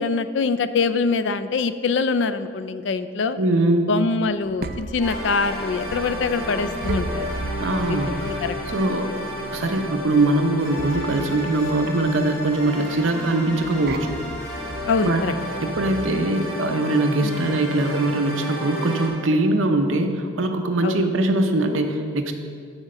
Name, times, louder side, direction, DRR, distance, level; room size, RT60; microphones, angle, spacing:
voice 1, 0.0-3.4 3.9-7.3 7.6-8.0 8.3-8.5 14.9-15.3 16.0-16.1 17.2-17.6 20.8-21.1, left 4 dB, 70° left, 12 dB, 0.4 m, -24 dB
voice 2, 3.4-3.9 7.6-8.4 8.7-9.1 9.5-14.1 15.0-15.2 15.6-22.3, right 2 dB, 90° right, 5 dB, 0.8 m, -22 dB
sound 1, 4.2-16.1, right 2 dB, 50° right, 0.4 m, -36 dB
sound 2, 5.0-19.1, left 1 dB, 10° left, 2.4 m, -32 dB
8.4 x 6.3 x 5.0 m, 2.2 s
head